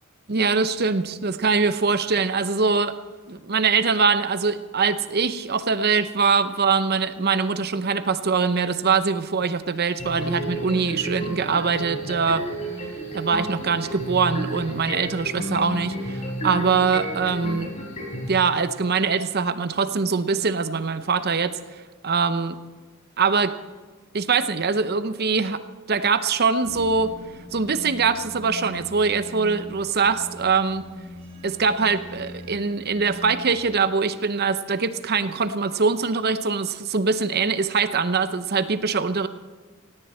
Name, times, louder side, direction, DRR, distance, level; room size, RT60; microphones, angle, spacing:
voice 1, 0.3-2.9 3.3-12.5 13.1-17.7 18.3-21.5 22.0-22.6 23.2-23.5 24.1-25.6 25.9-27.1 27.5-30.9 31.4-39.3, right 5 dB, 50° right, 12 dB, 0.7 m, -23 dB
sound 1, 10.0-18.3, right 1 dB, 35° left, 5.2 m, -32 dB
sound 2, 26.6-33.6, equal, 30° right, 2.5 m, -41 dB
17.0 x 17.0 x 4.3 m, 1.3 s
head